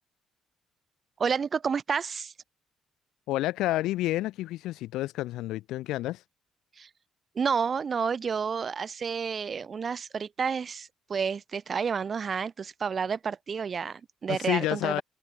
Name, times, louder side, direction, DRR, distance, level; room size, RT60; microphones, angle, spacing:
voice 1, 1.2-2.3 6.8-6.9 7.4-15.0, right 6 dB, 40° right, 0.4 m, -30 dB
voice 2, 3.3-6.2 14.3-15.0, left 16 dB, 65° left, 0.7 m, -29 dB
figure-of-eight pair, 40°, 0 cm